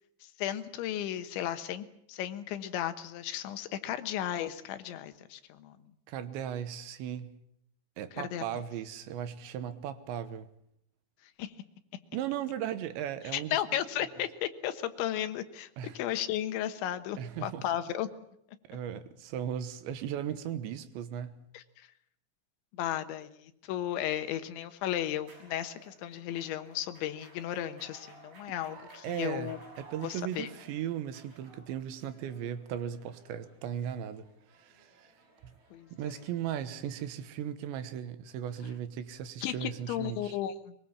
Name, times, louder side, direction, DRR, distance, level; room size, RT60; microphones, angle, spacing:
voice 1, 0.4-5.8 8.1-8.5 11.4-11.5 13.3-18.1 21.5-21.9 22.7-29.6 30.0-30.5 35.7-36.2 39.4-40.8, left 11 dB, 85° left, 3.6 m, -35 dB
voice 2, 6.1-7.4 8.0-10.5 12.1-13.6 14.0-14.1 15.8-16.0 17.2-17.6 18.7-21.4 29.0-34.3 34.5-35.1 35.4-35.5 35.9-40.4, right 9 dB, 85° right, 3.5 m, -37 dB
sound 1, 25.2-37.2, right 2 dB, 55° right, 8.5 m, -57 dB
22.5 x 22.0 x 7.3 m
omnidirectional pair, 5.2 m